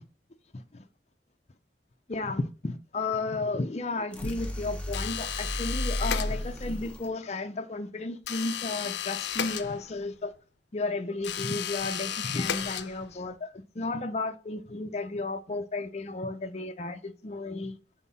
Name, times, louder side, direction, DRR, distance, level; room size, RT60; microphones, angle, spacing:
voice 1, 0.5-0.8 2.1-10.3 10.7-17.8, left 3 dB, 40° left, 0.6 m, -33 dB
sound 1, 4.1-7.1, left 1 dB, 5° left, 1.0 m, -33 dB
sound 2, 4.9-6.7 8.2-10.2 11.2-13.3, left 9 dB, 80° left, 0.5 m, -34 dB
6.0 x 4.6 x 4.1 m
head